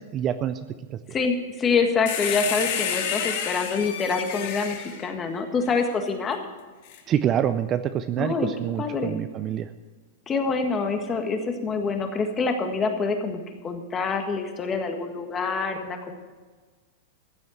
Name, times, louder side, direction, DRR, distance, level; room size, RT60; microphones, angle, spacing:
voice 1, 0.1-0.6 7.1-9.7, right 10 dB, 25° right, 11 dB, 0.5 m, -26 dB
voice 2, 1.1-6.4 8.2-8.5 8.8-9.2 10.3-16.1, left 4 dB, 20° left, 5 dB, 1.7 m, -26 dB
sound 1, 2.1-5.9 6.9-7.0, left 8 dB, 55° left, 1.9 m, -30 dB
15.0 x 7.8 x 7.4 m, 1.4 s
supercardioid pair, 155°, 0 cm